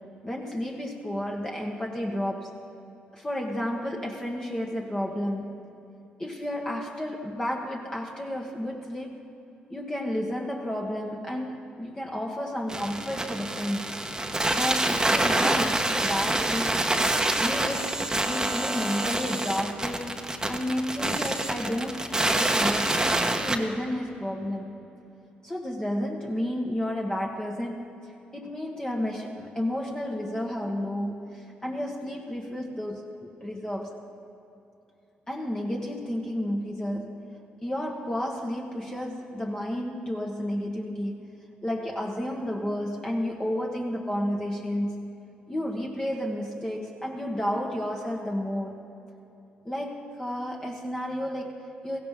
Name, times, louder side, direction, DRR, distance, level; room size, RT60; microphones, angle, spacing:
voice 1, 0.2-2.6 3.1-5.6 6.2-9.2 9.7-14.1 14.5-16.8 17.4-20.1 20.5-24.8 25.4-27.9 28.3-34.0 35.3-37.3 37.6-41.3 41.6-45.1 45.5-48.8 49.7-52.0, equal, 20° left, -1 dB, 1.6 m, -31 dB
sound 1, 12.7-23.6, right 2 dB, 15° right, 1.2 m, -26 dB
17.0 x 15.5 x 3.8 m, 2.8 s
supercardioid pair, 60°, 4 cm